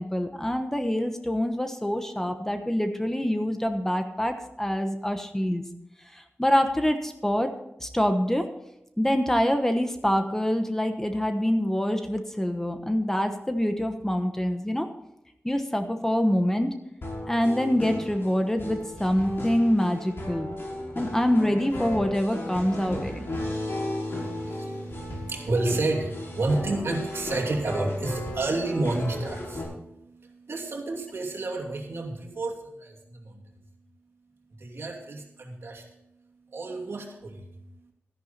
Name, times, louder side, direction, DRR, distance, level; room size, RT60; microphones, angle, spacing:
voice 1, 0.0-5.6 6.1-7.5 7.8-8.5 9.0-14.9 15.4-16.7 17.3-20.5 21.0-23.2, equal, 10° left, 6 dB, 1.1 m, -25 dB
sound 1, 17.0-29.6, left 1 dB, 60° left, 5.4 m, -35 dB
voice 2, 22.9-33.4 34.6-35.8 36.5-37.9, right 2 dB, 65° right, 2 dB, 2.6 m, -31 dB
13.0 x 11.0 x 4.2 m, 0.85 s
wide cardioid pair, 115°, 4 cm